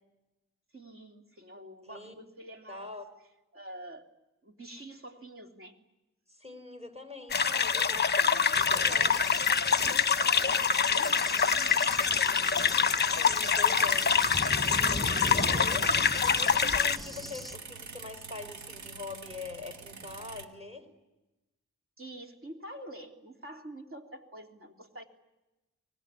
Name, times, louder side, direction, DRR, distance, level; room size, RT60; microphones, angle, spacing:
voice 1, 0.7-2.9 3.5-4.1 4.4-5.8 10.2-12.1 22.0-25.0, right 1 dB, 45° right, 4 dB, 3.3 m, -46 dB
voice 2, 1.6-2.2 2.7-3.1 6.3-9.2 9.6-10.0 13.1-14.1 14.6-20.9, left 3 dB, 20° right, 8 dB, 4.4 m, -43 dB
sound 1, 7.3-17.0, left 6 dB, 35° left, 0.9 m, -25 dB
Cricket / Thunder, 8.5-17.5, left 1 dB, ahead, 1.1 m, -40 dB
sound 2, 13.8-20.5, right 4 dB, 65° right, 2.1 m, -45 dB
24.0 x 20.0 x 9.9 m, 1.0 s
cardioid pair, 85°, 30 cm